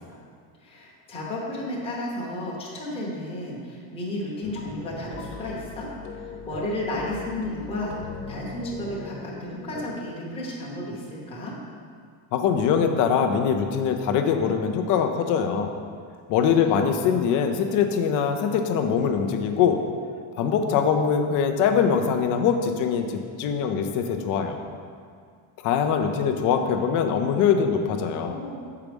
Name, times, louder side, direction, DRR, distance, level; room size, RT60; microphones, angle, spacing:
voice 1, 0.6-8.0 8.3-11.5 16.6-17.0 28.0-28.5, left 1 dB, 10° left, -5 dB, 0.9 m, -33 dB
sound 1, 4.4-9.8, left 3 dB, 60° left, 1.1 m, -39 dB
voice 2, 12.3-15.7 16.3-19.8 20.4-24.6 25.6-28.4, left 7 dB, 40° left, 5 dB, 0.5 m, -23 dB
7.1 x 4.7 x 5.2 m, 2.1 s
cardioid pair, 175°, 49 cm